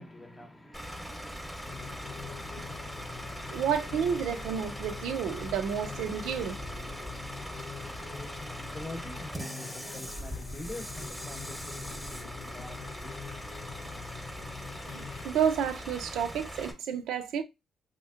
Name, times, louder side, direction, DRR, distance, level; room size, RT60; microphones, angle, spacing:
voice 1, 0.0-3.6 7.8-13.1, left 1 dB, 25° left, 0.8 m, -46 dB
Bus / Idling, 0.7-16.7, equal, 5° right, 0.9 m, -41 dB
sound 1, 1.7-15.3, left 7 dB, 85° left, 0.4 m, -45 dB
voice 2, 3.5-6.6 14.9-17.4, right 8 dB, 90° right, 0.4 m, -30 dB
3.4 x 2.9 x 2.4 m
cardioid pair, 80°, 0 cm